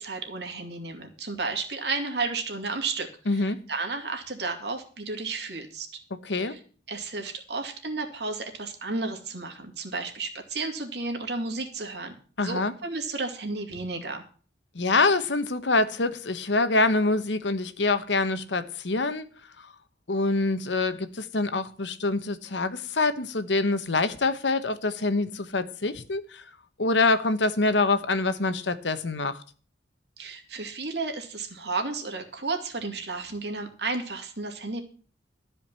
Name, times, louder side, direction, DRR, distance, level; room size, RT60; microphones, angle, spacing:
voice 1, 0.0-5.9 6.4-6.6 6.9-14.2 30.2-34.8, right 3 dB, 70° right, 2.4 m, -33 dB
voice 2, 3.3-3.6 6.2-6.6 12.4-12.7 14.7-19.2 20.1-26.4 26.8-29.4, left 3 dB, 80° left, 1.1 m, -25 dB
13.5 x 5.1 x 8.8 m
head